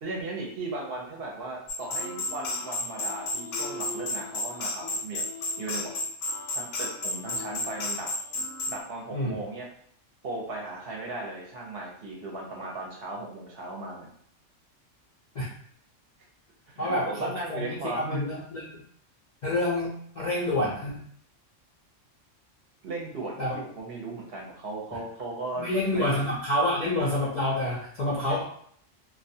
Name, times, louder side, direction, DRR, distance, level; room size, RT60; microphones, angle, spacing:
voice 1, 0.0-5.2 5.6-5.9 6.5-8.1 8.7-9.7 10.2-14.1 16.7-18.2 22.8-26.1 28.3-28.4, right 2 dB, 60° right, -2 dB, 0.7 m, -37 dB
sound 1, 1.7-8.8, left 2 dB, 80° left, 0.9 m, -32 dB
voice 2, 16.8-18.8 19.4-21.0 23.4-23.5 25.6-28.4, left 1 dB, 60° left, -6 dB, 0.4 m, -28 dB
2.3 x 2.2 x 2.6 m, 0.63 s
omnidirectional pair, 1.3 m